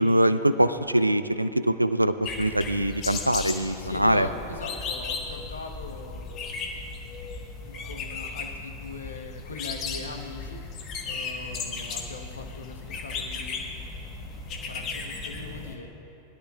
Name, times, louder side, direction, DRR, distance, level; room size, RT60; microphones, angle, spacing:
voice 1, 0.0-4.3, right 1 dB, 85° right, 13 dB, 0.4 m, -23 dB
sound 1, 2.2-15.8, left 4 dB, 35° left, 1.3 m, -36 dB
voice 2, 3.8-6.6 7.6-13.6 14.6-15.9, left 4 dB, 70° left, 4 dB, 1.0 m, -40 dB
21.0 x 12.0 x 2.4 m, 2.9 s
figure-of-eight pair, 90°, 0 cm